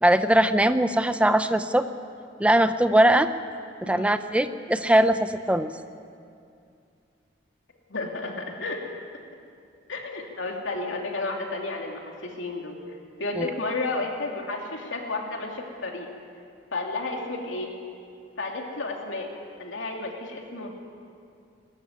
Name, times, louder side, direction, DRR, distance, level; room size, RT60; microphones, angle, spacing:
voice 1, 0.0-1.9 2.4-3.3 3.8-5.7 13.4-13.5, right 1 dB, 5° right, 10 dB, 0.6 m, -21 dB
voice 2, 7.9-8.8 9.9-12.8 13.2-16.1 16.7-17.7 18.4-19.3 19.6-20.7, left 3 dB, 85° left, 1 dB, 2.8 m, -32 dB
20.0 x 14.0 x 9.5 m, 2.4 s
head